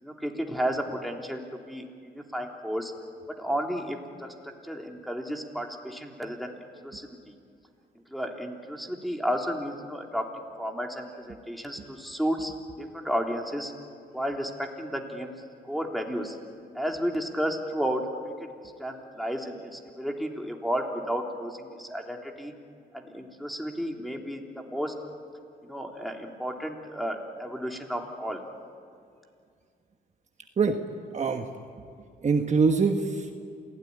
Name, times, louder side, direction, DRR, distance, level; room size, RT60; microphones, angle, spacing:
voice 1, 0.0-2.9 3.4-4.3 4.7-6.6 6.8-7.1 8.1-10.3 10.6-13.7 14.1-15.3 15.6-16.4 16.7-18.5 18.8-22.5 22.9-24.9 25.6-28.4, equal, ahead, 1 dB, 3.5 m, -32 dB
voice 2, 31.1-31.5 32.2-33.3, right 4 dB, 40° right, 5 dB, 1.4 m, -23 dB
27.5 x 17.5 x 10.0 m, 2.3 s
cardioid pair, 80°, 17 cm